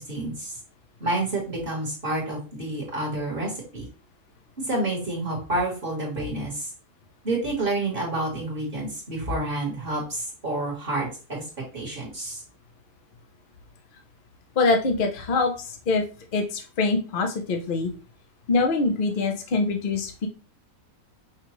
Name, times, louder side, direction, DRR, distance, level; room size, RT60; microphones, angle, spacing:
voice 1, 0.1-0.5 1.0-3.9 4.7-6.7 7.2-11.4 11.7-12.4, right 2 dB, 40° right, -2 dB, 1.6 m, -29 dB
voice 2, 14.6-16.0 16.3-17.9 18.5-20.3, left 3 dB, 45° left, 4 dB, 0.8 m, -24 dB
5.8 x 2.4 x 3.0 m, 0.35 s
omnidirectional pair, 1.5 m